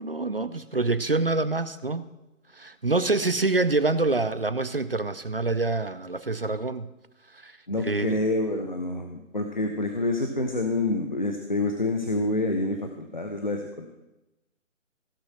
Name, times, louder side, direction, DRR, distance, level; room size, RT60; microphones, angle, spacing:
voice 1, 0.0-2.1 2.5-6.9 7.3-8.2, right 3 dB, 45° right, 13 dB, 0.5 m, -26 dB
voice 2, 7.7-13.9, left 2 dB, 35° left, 4 dB, 0.8 m, -27 dB
16.0 x 5.4 x 6.2 m, 0.98 s
figure-of-eight pair, 175°, 39 cm